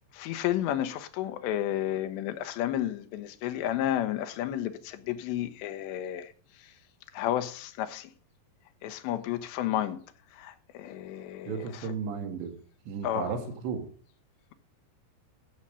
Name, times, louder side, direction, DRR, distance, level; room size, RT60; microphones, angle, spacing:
voice 1, 0.1-6.3 7.1-8.1 8.8-10.0 10.3-11.6 13.0-13.3, left 12 dB, 85° left, 3.1 m, -31 dB
voice 2, 11.5-12.6 12.9-13.9, right 6 dB, 80° right, 4.1 m, -34 dB
14.0 x 5.6 x 7.5 m
omnidirectional pair, 5.0 m